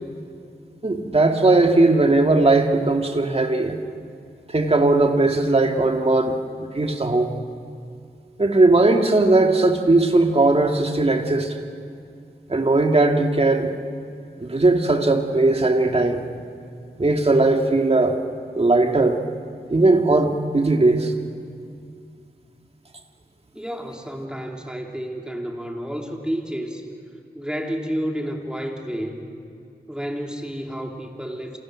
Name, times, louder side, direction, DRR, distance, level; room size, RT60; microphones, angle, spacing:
voice 1, 0.8-3.8 4.5-6.3 6.6-7.3 8.4-11.5 12.5-13.7 14.4-16.2 17.0-18.2 18.5-19.2 19.7-21.1, right 2 dB, 40° right, 3 dB, 2.1 m, -18 dB
voice 2, 23.5-26.8 27.3-29.2 29.9-31.6, equal, 5° right, 1 dB, 3.2 m, -30 dB
29.0 x 28.0 x 6.4 m, 2.4 s
wide cardioid pair, 85°, 16 cm